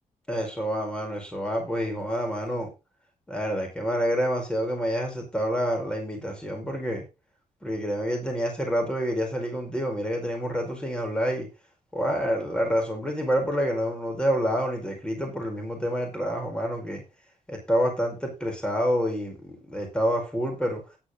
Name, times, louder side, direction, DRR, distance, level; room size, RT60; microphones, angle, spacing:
voice 1, 0.3-2.7 3.3-7.0 7.6-11.5 11.9-17.0 17.5-20.8, equal, 5° left, 2 dB, 4.9 m, -28 dB
10.5 x 9.5 x 4.0 m, 0.28 s
wide cardioid pair, 130°, 13 cm